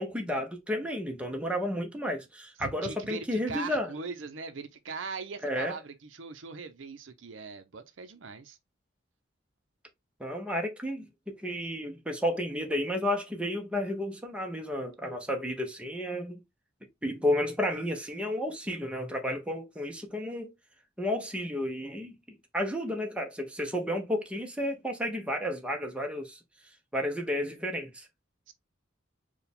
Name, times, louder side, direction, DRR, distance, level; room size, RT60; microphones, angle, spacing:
voice 1, 0.0-3.9 5.4-5.7 10.2-11.1 11.4-16.4 17.0-20.5 21.0-22.2 22.5-26.4 26.9-28.1, left 1 dB, 5° right, 0.9 m, -32 dB
voice 2, 2.6-8.6 28.5-28.6, right 4 dB, 80° right, 0.7 m, -40 dB
4.7 x 2.3 x 3.5 m
head